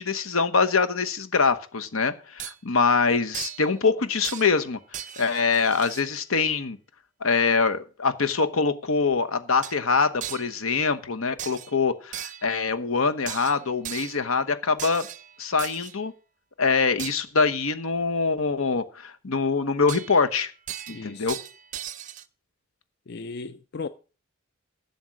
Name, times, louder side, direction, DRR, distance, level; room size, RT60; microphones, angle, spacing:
voice 1, 0.0-4.8 5.2-6.8 7.2-15.1 15.4-16.1 16.6-20.5 20.9-21.4, left 4 dB, 85° left, 1.1 m, -24 dB
sound 1, 2.4-2.6 3.3-3.7 4.2-4.7 4.9-6.1 9.6-9.8 10.2-10.6 11.4-11.8 12.1-12.6 13.3-14.3 14.8-16.0 17.0-17.2 19.9-20.3 20.7-22.3, right 11 dB, 35° right, 0.5 m, -37 dB
voice 2, 20.9-21.3 23.1-23.9, left 4 dB, 50° left, 0.4 m, -36 dB
11.5 x 7.0 x 6.1 m
head